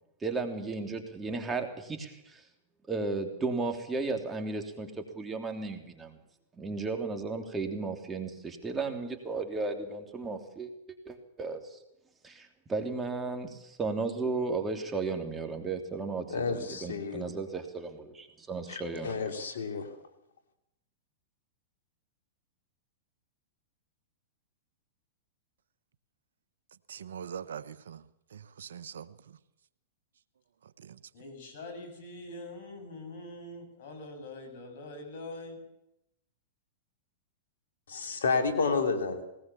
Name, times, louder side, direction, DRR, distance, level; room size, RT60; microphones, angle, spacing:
voice 1, 0.2-2.4 2.9-6.2 6.6-10.7 11.0-11.8 12.2-19.3, right 3 dB, 15° right, 3.2 m, -34 dB
voice 2, 16.3-17.2 18.7-19.9 37.9-39.2, left 4 dB, 80° left, 3.3 m, -30 dB
voice 3, 26.9-28.0 28.3-29.4 30.6-31.0, right 8 dB, 80° right, 1.1 m, -43 dB
voice 4, 31.1-35.6, left 2 dB, 65° left, 7.4 m, -44 dB
20.0 x 19.0 x 7.2 m
hypercardioid pair, 110°, 0 cm